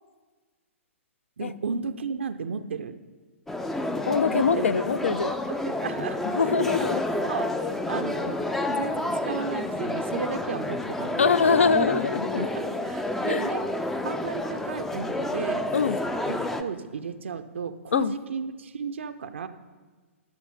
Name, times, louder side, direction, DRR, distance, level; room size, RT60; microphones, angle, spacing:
voice 1, 1.4-3.0 4.3-4.7 5.4-6.5 6.8-6.9 7.2-8.4 8.7-11.2 12.4-13.6 14.0-15.7 16.3-19.5, right 5 dB, 60° right, 8 dB, 0.5 m, -34 dB
sound 1, 3.5-16.6, left 1 dB, 5° left, 0.4 m, -29 dB
voice 2, 4.1-5.4 6.2-7.0 11.2-12.5 13.3-13.4 15.7-16.0 17.9-18.1, left 5 dB, 65° left, 15 dB, 0.4 m, -23 dB
12.0 x 6.2 x 5.2 m, 1.4 s
figure-of-eight pair, 115°, 7 cm